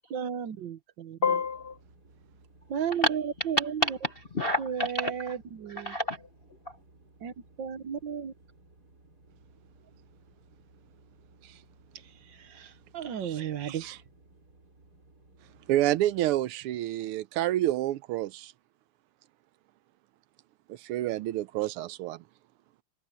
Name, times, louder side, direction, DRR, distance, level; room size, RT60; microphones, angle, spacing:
voice 1, 0.1-1.2 2.7-3.6 4.6-5.9 7.2-7.3 7.6-8.3 12.5-13.9, right 8 dB, 60° right, 1.6 m, -34 dB
voice 2, 1.2-1.8 2.9-5.4 5.7-6.3 6.7-6.8, left 1 dB, 45° left, 0.8 m, -30 dB
sound 1, 1.4-16.4, right 2 dB, 45° right, 5.0 m, -59 dB
voice 3, 13.2-14.0 15.7-18.5 20.7-22.2, right 14 dB, 85° right, 1.5 m, -29 dB
omnidirectional pair, 2.4 m